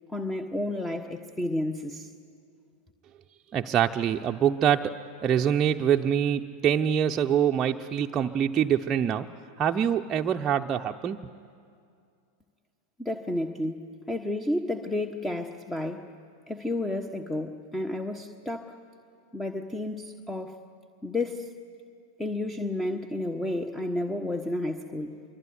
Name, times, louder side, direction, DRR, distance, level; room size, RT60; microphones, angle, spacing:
voice 1, 0.1-2.1 13.0-16.1 16.5-18.8 19.3-20.6 21.0-21.5 22.2-25.2, left 1 dB, 10° left, 7 dB, 1.3 m, -31 dB
voice 2, 3.5-9.3 9.6-11.2, right 9 dB, 30° right, 3 dB, 0.8 m, -25 dB
25.0 x 23.5 x 9.6 m, 2.3 s
figure-of-eight pair, 90°, 0 cm